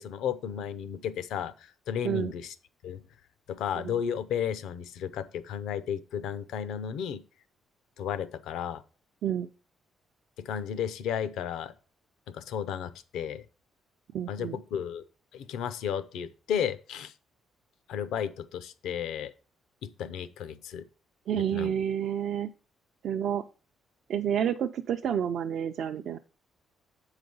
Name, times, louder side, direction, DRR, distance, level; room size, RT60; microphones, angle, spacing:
voice 1, 0.0-2.5 2.8-3.0 3.5-7.2 8.0-8.8 10.4-11.7 12.3-13.4 14.3-15.0 15.3-17.1 17.9-19.3 19.8-20.8 21.5-21.7, left 8 dB, 85° left, 14 dB, 0.6 m, -33 dB
voice 2, 14.1-14.6 21.3-22.5 23.0-23.4 24.1-26.2, right 9 dB, 70° right, 5 dB, 0.4 m, -29 dB
7.7 x 4.9 x 5.3 m, 0.36 s
cardioid pair, 90°, 0 cm